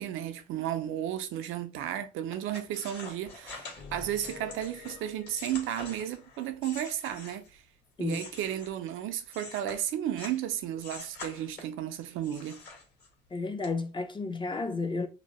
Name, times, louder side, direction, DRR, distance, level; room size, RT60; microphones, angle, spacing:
voice 1, 0.0-7.6 8.0-12.6, right 11 dB, 85° right, 0.4 m, -33 dB
sound 1, 2.3-7.6 8.0-10.4 10.8-11.8 12.2-13.3 13.6-13.7, left 3 dB, 60° left, 1.4 m, -46 dB
sound 2, 3.8-6.5 6.9-7.0 7.4-7.5 7.8-7.9, left 5 dB, 80° left, 1.3 m, -49 dB
voice 2, 13.3-15.1, left 3 dB, 25° left, 0.4 m, -32 dB
2.6 x 2.0 x 2.9 m
cardioid pair, 90°, 20 cm